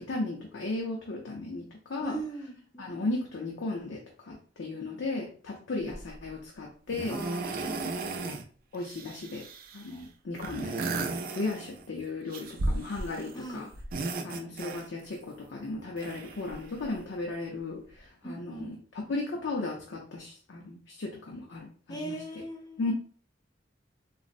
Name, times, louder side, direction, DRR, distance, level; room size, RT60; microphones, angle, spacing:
voice 1, 0.0-2.2 2.8-7.2 7.8-7.9 8.3-8.4 8.7-9.5 9.7-11.1 11.4-13.7 14.2-22.2 22.8-22.9, left 3 dB, 85° left, -1 dB, 0.6 m, -36 dB
voice 2, 2.0-3.1 7.1-8.3 13.3-13.6 18.2-18.7 21.9-22.8, right 2 dB, 20° left, 2 dB, 0.6 m, -40 dB
sound 1, 5.9-6.2 6.9-8.4 8.7-9.9 10.4-11.9 12.3-13.4 13.7-15.2 16.0-17.0 17.9-18.0, right 3 dB, 50° right, 0.4 m, -35 dB
3.9 x 2.0 x 2.5 m, 0.42 s
head